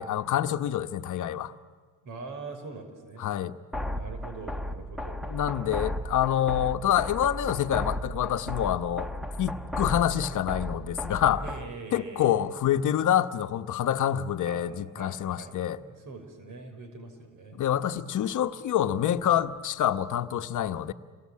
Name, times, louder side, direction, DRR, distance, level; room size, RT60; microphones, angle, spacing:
voice 1, 0.0-1.5 3.2-3.6 5.3-9.1 9.4-11.4 11.9-15.8 17.5-20.9, left 10 dB, 55° left, 9 dB, 1.2 m, -27 dB
voice 2, 2.0-3.3 3.9-5.3 11.4-12.4 14.4-14.6 14.9-17.7, right 3 dB, 55° right, 5 dB, 5.9 m, -43 dB
sound 1, 3.7-11.7, left 1 dB, ahead, 1.4 m, -35 dB
28.5 x 23.5 x 8.7 m, 1.5 s
supercardioid pair, 85°, 37 cm